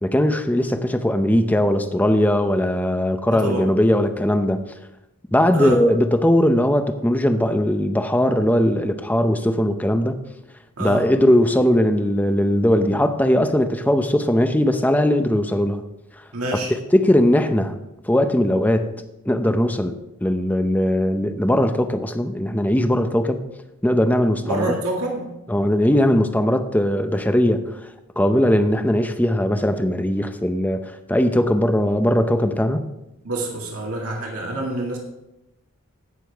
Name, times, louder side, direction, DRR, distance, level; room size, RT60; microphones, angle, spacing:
voice 1, 0.0-4.6 5.3-10.2 10.8-15.8 16.7-17.8 18.0-19.0 19.3-20.0 20.2-23.4 23.8-24.7 25.5-27.9 28.2-32.8, left 1 dB, 5° left, 8 dB, 0.7 m, -19 dB
voice 2, 3.3-3.7 5.5-5.8 10.8-11.0 16.3-16.7 24.3-25.3 33.2-35.0, right 2 dB, 85° right, -1 dB, 2.1 m, -27 dB
16.5 x 6.8 x 3.5 m, 0.90 s
head